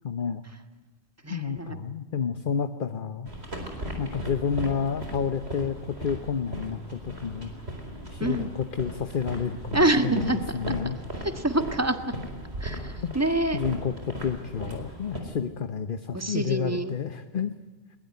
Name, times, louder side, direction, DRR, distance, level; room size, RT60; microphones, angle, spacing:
voice 1, 0.0-0.4 1.3-3.3 4.0-7.5 8.1-9.8 10.0-11.0 13.0-13.2 13.5-17.5, left 6 dB, 55° left, 9 dB, 1.1 m, -30 dB
voice 2, 1.2-1.8 8.2-8.5 9.7-10.6 10.8-10.9 11.3-12.1 12.6-13.6 16.1-16.9, right 1 dB, 15° right, 8 dB, 1.6 m, -26 dB
sound 1, 3.3-15.2, equal, 80° right, 4.6 m, -37 dB
21.5 x 21.0 x 9.4 m, 1.3 s
omnidirectional pair, 1.1 m